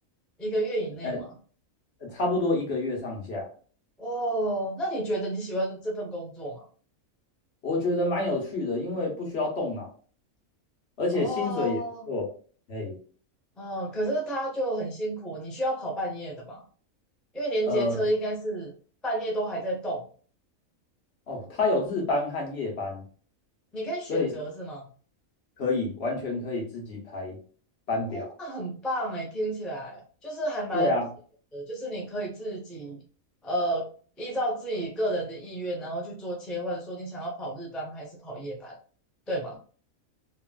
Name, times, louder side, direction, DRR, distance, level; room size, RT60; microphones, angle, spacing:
voice 1, 0.4-1.3 4.0-6.7 11.1-12.1 13.6-16.6 17.3-18.7 19.0-20.0 23.7-24.9 28.1-30.9 31.5-33.0 33.4-33.9 34.2-38.8 39.3-39.6, right 1 dB, ahead, -2 dB, 0.4 m, -31 dB
voice 2, 2.0-3.5 7.6-9.9 11.0-11.8 12.1-12.3 12.7-13.0 17.7-18.0 21.3-23.0 24.1-24.3 25.6-27.4 27.9-28.3 30.7-31.0, left 2 dB, 55° left, -1 dB, 1.1 m, -28 dB
3.1 x 2.3 x 2.3 m, 0.42 s
omnidirectional pair, 1.4 m